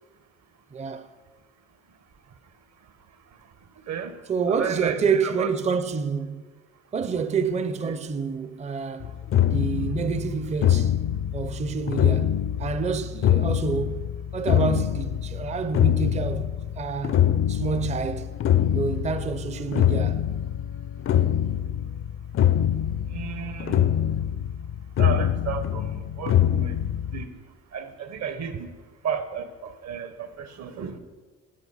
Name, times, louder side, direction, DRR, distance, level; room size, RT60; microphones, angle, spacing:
voice 1, 0.7-1.1 4.3-6.4 6.9-9.1 9.4-10.9 11.3-12.3 12.6-14.1 14.3-16.5 16.8-17.2 17.5-18.3 18.7-20.2, right 5 dB, 25° right, 0.5 m, -28 dB
voice 2, 3.8-4.2 4.5-5.5 7.9-8.0 23.1-23.8 25.0-26.8 27.1-27.3 27.7-28.7 29.0-31.0, right 7 dB, 60° right, 1.0 m, -33 dB
sound 1, 9.0-27.2, left 10 dB, 45° left, 0.4 m, -24 dB
8.0 x 7.3 x 5.5 m
cardioid pair, 90°, 30 cm